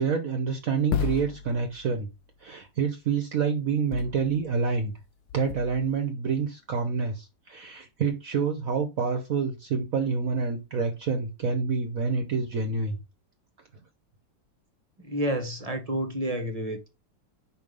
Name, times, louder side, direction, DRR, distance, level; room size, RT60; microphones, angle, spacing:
voice 1, 0.0-2.1 2.4-4.9 5.3-13.0, right 5 dB, 55° right, 1.4 m, -27 dB
sound 1, 0.9-2.1 3.9-4.8 5.3-5.9, left 8 dB, 75° left, 1.1 m, -33 dB
voice 2, 15.0-16.9, equal, 25° right, 1.3 m, -30 dB
5.1 x 5.0 x 5.4 m
omnidirectional pair, 1.9 m